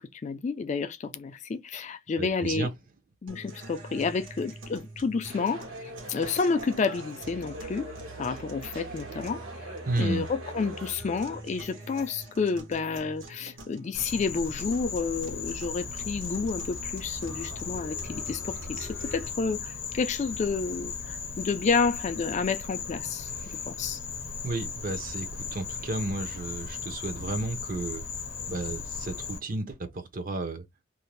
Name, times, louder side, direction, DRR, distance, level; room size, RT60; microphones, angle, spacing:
voice 1, 0.0-2.7 3.2-7.9 8.2-9.4 10.0-24.0, left 4 dB, 35° left, 0.3 m, -30 dB
voice 2, 2.2-2.7 9.9-10.3 24.4-28.0 28.5-30.6, right 2 dB, 40° right, 0.6 m, -32 dB
sound 1, 3.3-19.3, right 2 dB, 65° right, 1.0 m, -45 dB
sound 2, 5.3-10.9, right 1 dB, 80° right, 1.2 m, -42 dB
Insect, 13.9-29.4, left 5 dB, 65° left, 0.7 m, -37 dB
2.6 x 2.0 x 3.0 m
head